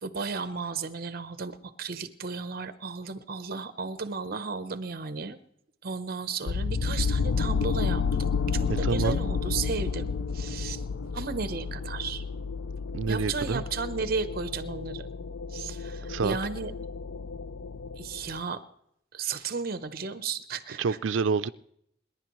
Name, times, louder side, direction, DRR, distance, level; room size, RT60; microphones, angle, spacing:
voice 1, 0.0-5.4 5.8-8.0 8.3-10.1 10.3-10.8 11.1-12.2 13.1-15.1 15.5-16.7 18.0-18.6 19.1-21.0, right 5 dB, 50° right, 12 dB, 0.8 m, -34 dB
sound 1, 6.5-18.4, left 5 dB, 75° left, 0.4 m, -31 dB
voice 2, 8.7-9.2 12.9-13.6 16.1-16.4 20.8-21.5, right 5 dB, 85° right, 14 dB, 0.4 m, -27 dB
28.0 x 11.0 x 3.1 m, 0.73 s
head